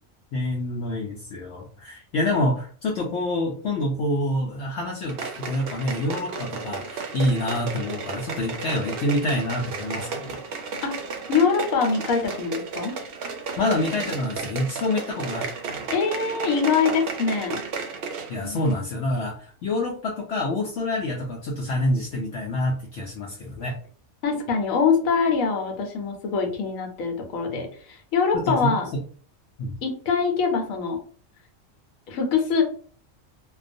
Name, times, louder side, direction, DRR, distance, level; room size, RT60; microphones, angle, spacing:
voice 1, 0.3-10.4 13.6-15.9 18.3-23.7 28.3-28.8 29.6-29.8, left 1 dB, 65° left, -2 dB, 0.8 m, -27 dB
sound 1, 5.1-18.4 18.7-18.8, right 4 dB, 65° right, 0.6 m, -33 dB
voice 2, 11.3-13.0 15.9-17.6 18.4-18.6 24.2-28.9 29.8-31.0 32.1-32.6, left 5 dB, 90° left, 3 dB, 1.0 m, -23 dB
2.4 x 2.2 x 2.5 m, 0.43 s
omnidirectional pair, 1.4 m